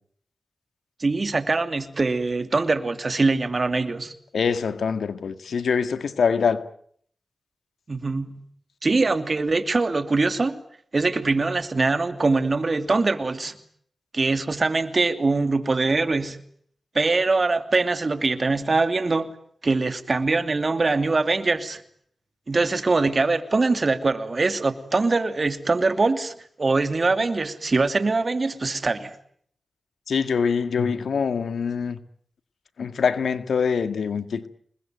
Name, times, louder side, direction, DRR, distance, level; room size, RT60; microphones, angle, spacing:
voice 1, 1.0-4.1 7.9-8.4 8.8-10.6 10.9-13.6 14.1-16.4 16.9-19.3 19.6-21.8 22.5-29.2, right 3 dB, 50° right, 2.8 m, -23 dB
voice 2, 4.3-6.6 30.1-32.0 32.8-34.5, left 6 dB, 85° left, 1.9 m, -24 dB
27.0 x 21.0 x 9.3 m
cardioid pair, 45°, 0 cm